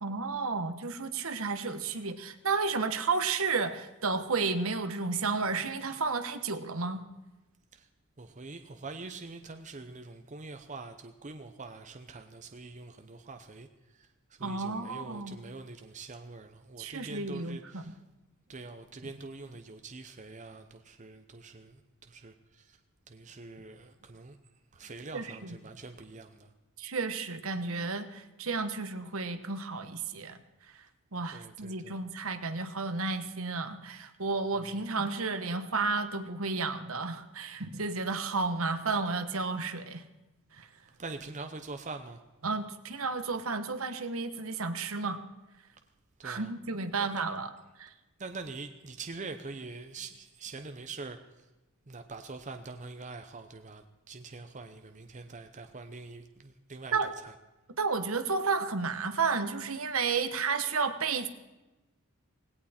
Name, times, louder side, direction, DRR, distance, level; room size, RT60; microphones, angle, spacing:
voice 1, 0.0-7.0 14.4-15.4 16.8-17.9 25.1-25.6 26.8-30.4 31.1-40.0 40.6-40.7 42.4-45.2 46.2-47.5 47.8-47.9 56.9-57.1 57.8-61.3, right 4 dB, 70° right, 9 dB, 1.3 m, -32 dB
voice 2, 8.2-13.7 13.9-18.0 18.5-22.8 23.1-24.4 24.7-26.5 31.3-32.0 41.0-42.2 46.2-46.5 47.0-47.2 48.2-51.2 51.9-57.3, right 3 dB, 35° right, 7 dB, 0.8 m, -44 dB
18.5 x 17.0 x 4.4 m, 1.1 s
head